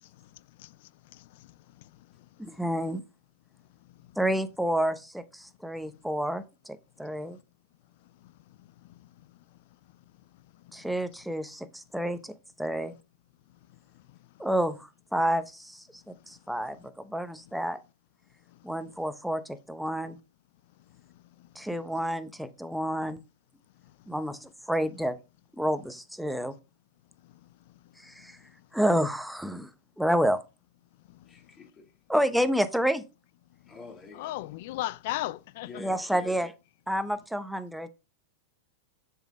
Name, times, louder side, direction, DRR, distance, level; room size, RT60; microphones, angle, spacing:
voice 1, 0.0-2.6 3.8-4.1 7.1-7.2 8.0-9.6 9.9-10.0 10.3-10.9 13.9-14.5 16.1-16.3 18.5-18.7 21.0-21.7 23.8-24.1 27.2-28.6 31.1-31.5 33.6-33.8 34.1-35.7, left 17 dB, 60° left, 0.4 m, -42 dB
voice 2, 2.4-3.0 4.2-7.4 10.7-12.3 12.6-12.9 14.4-17.8 18.6-20.2 21.6-23.2 24.1-25.2 25.6-26.5 28.0-28.4 28.7-29.7 30.0-30.4 32.1-33.0 35.8-36.5 36.9-37.9, equal, ahead, 0.8 m, -29 dB
voice 3, 31.3-31.9 33.6-34.4 35.6-36.3, left 3 dB, 25° left, 2.4 m, -47 dB
7.0 x 5.7 x 3.7 m
hypercardioid pair, 105°, 0 cm